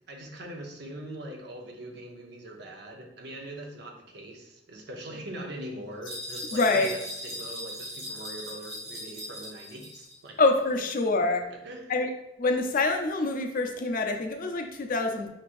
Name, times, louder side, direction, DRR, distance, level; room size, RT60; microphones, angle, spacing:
voice 1, 0.1-10.4 10.7-10.8 11.5-11.9, right 1 dB, 60° right, 1 dB, 0.8 m, -42 dB
sound 1, 6.1-10.2, left 1 dB, 35° right, 1.0 m, -39 dB
voice 2, 6.5-6.9 10.4-11.4 11.9-12.1 12.4-15.3, left 3 dB, 50° left, 4 dB, 0.5 m, -25 dB
5.7 x 3.1 x 2.5 m, 0.92 s
head